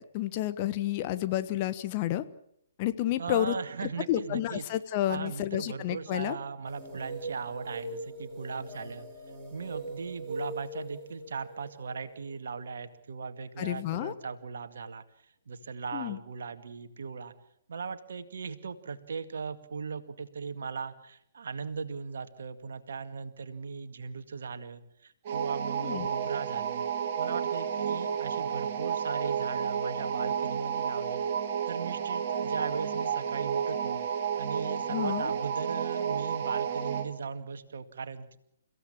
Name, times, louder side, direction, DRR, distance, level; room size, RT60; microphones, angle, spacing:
voice 1, 0.0-2.2 2.8-3.6 3.8-6.4 13.6-14.1 15.9-16.2 25.8-26.1 34.9-35.3, left 13 dB, 30° left, 11 dB, 1.3 m, -30 dB
voice 2, 3.2-4.7 5.1-9.1 9.5-15.0 15.5-17.3 17.7-26.8 27.2-31.2 31.7-34.0 34.4-38.4, right 5 dB, 55° right, 9 dB, 2.1 m, -38 dB
sound 1, 6.6-13.1, right 2 dB, 10° right, 4.4 m, -41 dB
sound 2, 25.3-37.1, right 7 dB, 40° right, 2.7 m, -31 dB
30.0 x 16.0 x 7.4 m, 0.73 s
figure-of-eight pair, 125°, 0 cm